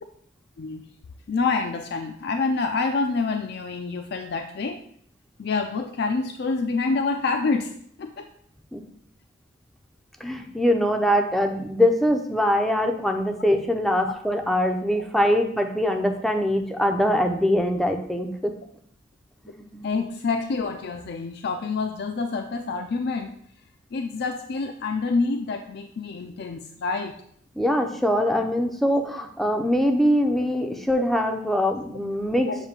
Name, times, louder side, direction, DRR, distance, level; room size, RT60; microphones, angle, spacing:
voice 1, 1.3-4.8 5.4-7.7 8.0-8.3 19.8-23.3 23.9-27.2 31.4-31.5 32.2-32.6, left 4 dB, 60° left, 5 dB, 0.4 m, -27 dB
voice 2, 10.2-18.5 19.4-19.9 27.6-32.5, equal, ahead, 4 dB, 0.5 m, -23 dB
7.2 x 2.7 x 5.0 m, 0.65 s
head